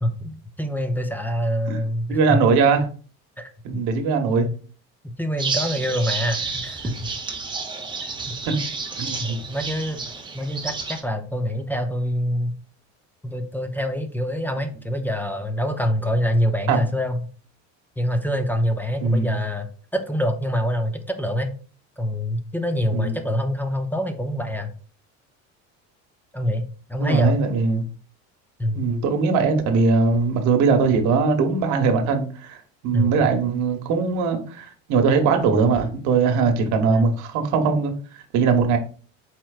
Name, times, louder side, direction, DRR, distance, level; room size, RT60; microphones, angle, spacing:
voice 1, 0.0-2.4 3.4-3.5 4.4-4.5 5.0-6.9 8.0-8.4 9.2-10.0 10.3-12.6 13.2-17.3 18.0-21.5 22.0-24.7 26.3-27.4 28.6-28.8 32.9-33.2 36.9-37.2, equal, 5° left, 6 dB, 0.4 m, -25 dB
voice 2, 2.1-2.9 3.6-4.5 8.5-8.6 9.0-9.4 16.7-16.8 19.0-19.4 22.9-23.1 27.0-27.8 28.7-32.6 32.8-38.8, right 4 dB, 70° right, 5 dB, 1.0 m, -20 dB
sound 1, 5.4-11.0, right 4 dB, 15° right, 0.7 m, -30 dB
4.4 x 4.3 x 2.3 m, 0.39 s
cardioid pair, 130°, 31 cm